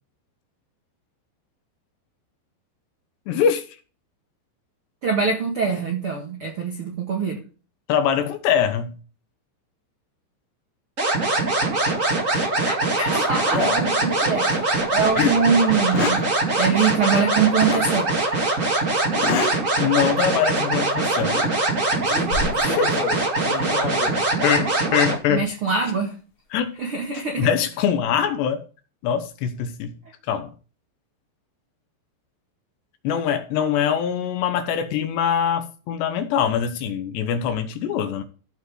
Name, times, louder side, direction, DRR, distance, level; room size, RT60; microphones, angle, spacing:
voice 1, 3.3-3.6 7.9-8.9 15.2-15.4 19.8-21.4 22.6-23.0 24.4-25.5 26.5-26.7 27.4-28.6 29.0-30.0 30.3-30.5 33.0-38.2, left 8 dB, 75° left, 3.0 m, -23 dB
voice 2, 5.0-7.4 12.6-16.2 16.6-18.1 25.3-26.2 26.8-27.5, right 5 dB, 75° right, 1.2 m, -23 dB
sound 1, 11.0-25.2, right 2 dB, 40° right, 1.0 m, -22 dB
sound 2, 13.5-14.6 15.0-15.1 15.7-16.3 17.6-17.9 19.1-19.6 20.1-20.3 21.2-21.5 21.9-24.2 25.7-25.9 26.9-27.2, left 4 dB, 55° left, 3.6 m, -29 dB
14.5 x 5.5 x 4.7 m
omnidirectional pair, 5.6 m